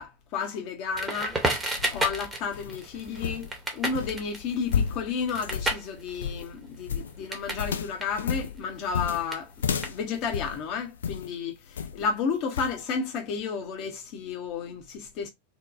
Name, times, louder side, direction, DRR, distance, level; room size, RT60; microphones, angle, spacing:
voice 1, 0.0-1.4 1.9-9.5 9.8-15.3, left 5 dB, 40° left, 0.8 m, -32 dB
Crackle, 0.9-7.7 7.9-10.4, right 2 dB, 10° right, 0.8 m, -33 dB
sound 1, 1.6-11.3 11.8-12.1 12.6-12.8, left 7 dB, 65° left, 0.4 m, -33 dB
2.9 x 2.2 x 2.4 m
figure-of-eight pair, 90°, 0 cm